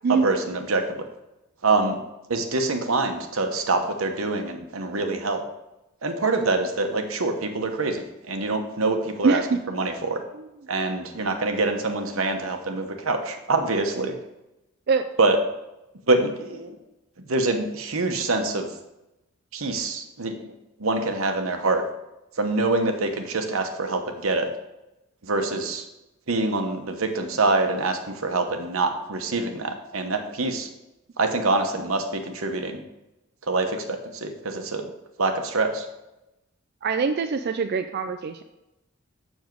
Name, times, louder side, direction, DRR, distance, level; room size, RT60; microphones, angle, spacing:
voice 1, 0.2-1.0 1.6-2.0 2.3-5.4 6.0-9.4 9.7-10.2 10.7-14.1 15.2-15.4 16.1-16.7 17.3-18.7 19.5-20.5 20.8-21.8 22.4-24.5 25.2-25.8 26.3-30.7 31.2-32.8 33.5-34.8 35.2-35.8, right 3 dB, 90° right, 5 dB, 1.0 m, -25 dB
voice 2, 9.2-9.6 10.3-10.5 14.9-15.1 36.8-38.4, right 5 dB, 50° right, 7 dB, 0.4 m, -23 dB
7.2 x 6.4 x 4.6 m, 0.94 s
head